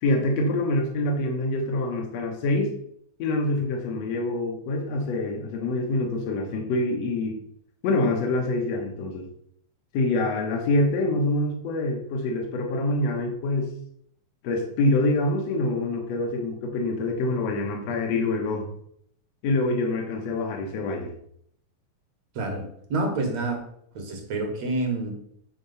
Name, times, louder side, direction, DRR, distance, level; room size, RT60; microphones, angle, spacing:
voice 1, 0.0-2.7 3.2-7.4 7.8-9.3 9.9-13.7 14.4-18.7 19.4-21.1, left 2 dB, 65° left, 2 dB, 2.2 m, -25 dB
voice 2, 22.4-23.6 23.9-25.1, right 2 dB, 65° right, 3 dB, 2.6 m, -28 dB
8.8 x 4.3 x 5.7 m, 0.68 s
omnidirectional pair, 3.5 m